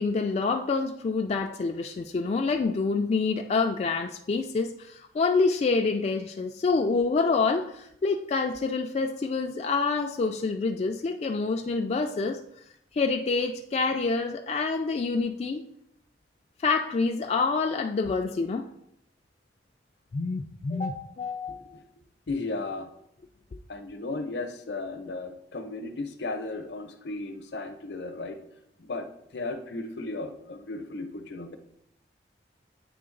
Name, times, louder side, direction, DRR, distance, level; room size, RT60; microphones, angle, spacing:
voice 1, 0.0-12.4 12.9-15.6 16.6-18.6 20.1-21.6, left 4 dB, 35° left, 3 dB, 0.3 m, -27 dB
voice 2, 22.3-22.9 23.7-28.4 28.8-31.6, left 3 dB, 70° left, 8 dB, 0.7 m, -35 dB
8.6 x 3.4 x 3.8 m, 0.75 s
head